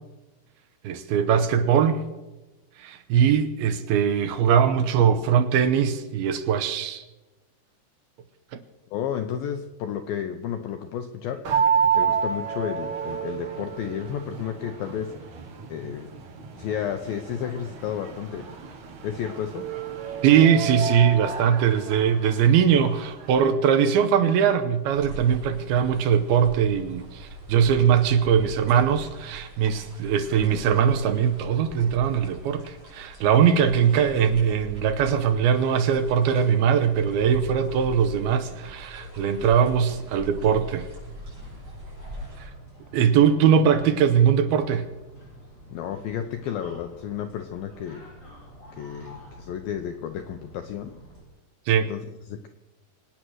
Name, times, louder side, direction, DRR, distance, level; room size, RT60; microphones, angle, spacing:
voice 1, 0.8-2.0 2.8-7.0 20.2-40.9 42.9-44.9 51.7-51.9, right 8 dB, 75° right, 2.4 m, -21 dB
voice 2, 8.9-11.5 11.9-15.1 15.7-16.1 16.5-18.4 19.0-19.7 45.7-48.0 48.8-51.0 51.9-52.5, left 9 dB, 80° left, 2.1 m, -32 dB
sound 1, 11.4-23.4, right 6 dB, 55° right, 2.6 m, -30 dB
sound 2, 24.9-42.5, equal, 25° right, 6.9 m, -42 dB
sound 3, 39.4-51.2, equal, 15° left, 6.9 m, -48 dB
24.5 x 9.2 x 6.4 m
omnidirectional pair, 5.0 m